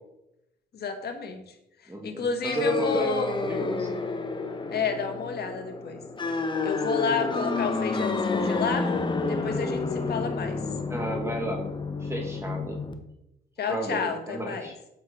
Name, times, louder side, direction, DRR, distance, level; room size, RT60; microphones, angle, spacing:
voice 1, 0.7-1.6 1.8-3.3 4.7-6.0 6.3-8.9 9.2-10.6 13.6-14.7, left 5 dB, 55° left, 5 dB, 1.6 m, -31 dB
voice 2, 1.9-3.1 3.4-4.0 10.9-11.7 12.0-12.8 13.7-14.7, right 1 dB, 15° right, 2 dB, 1.2 m, -32 dB
sound 1, 2.4-12.9, left 3 dB, 25° left, 1.0 m, -30 dB
7.3 x 6.6 x 4.9 m, 0.86 s
cardioid pair, 90°, 20 cm